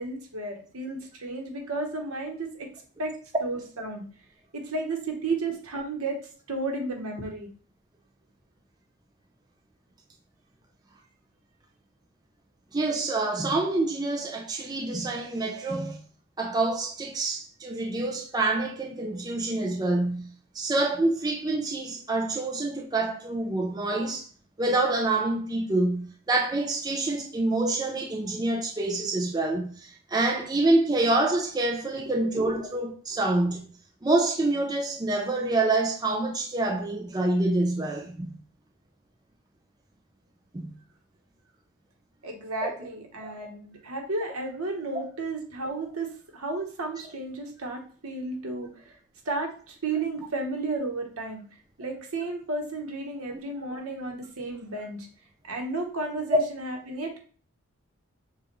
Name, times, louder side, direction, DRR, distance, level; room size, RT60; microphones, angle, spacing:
voice 1, 0.0-2.7 3.0-3.1 3.4-4.0 4.5-6.2 6.5-7.5 32.2-32.3 42.2-48.9 49.2-51.4 51.8-55.1 55.5-57.2, right 2 dB, 85° right, 1.1 m, -33 dB
voice 2, 12.7-16.0 16.4-24.3 24.6-33.6 34.0-38.3 40.5-40.7 42.6-42.7 43.2-43.3 53.3-53.4 53.7-53.8, right 2 dB, 20° right, 0.4 m, -27 dB
6.8 x 2.4 x 3.0 m
head